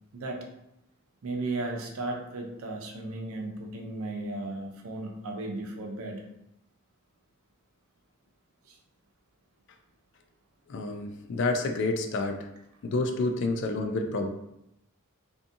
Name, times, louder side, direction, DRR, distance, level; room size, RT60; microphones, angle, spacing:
voice 1, 0.1-0.4 1.2-6.2 8.7-8.8, right 2 dB, 70° right, 2 dB, 0.5 m, -35 dB
voice 2, 10.7-12.5 12.8-14.3, left 2 dB, 55° left, 5 dB, 0.3 m, -29 dB
2.6 x 2.6 x 2.5 m, 0.85 s
head